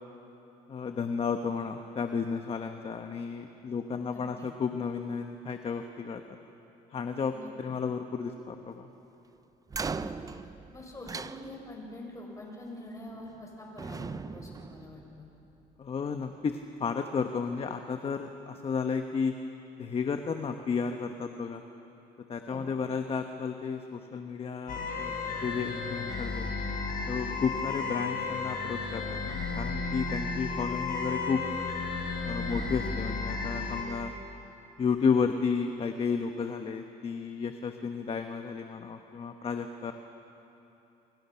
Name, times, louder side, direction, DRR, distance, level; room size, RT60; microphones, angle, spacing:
voice 1, 0.7-6.4 6.9-7.3 7.6-8.9 15.8-19.4 19.8-21.6 22.3-25.1 25.4-26.5 27.1-31.4 32.3-34.1 34.8-39.9, left 5 dB, 35° left, 6 dB, 1.2 m, -32 dB
voice 2, 4.0-4.5 7.3-7.5 9.9-10.2 10.7-15.3 22.5-22.6 32.4-32.6, left 1 dB, 20° left, -1 dB, 6.7 m, -45 dB
sound 1, 9.7-12.0 13.1-13.5 13.8-15.5, right 4 dB, 20° right, 0.6 m, -39 dB
sound 2, 24.7-33.8, left 4 dB, 55° left, 6.1 m, -33 dB
29.0 x 24.0 x 5.9 m, 2.9 s
cardioid pair, 110°, 18 cm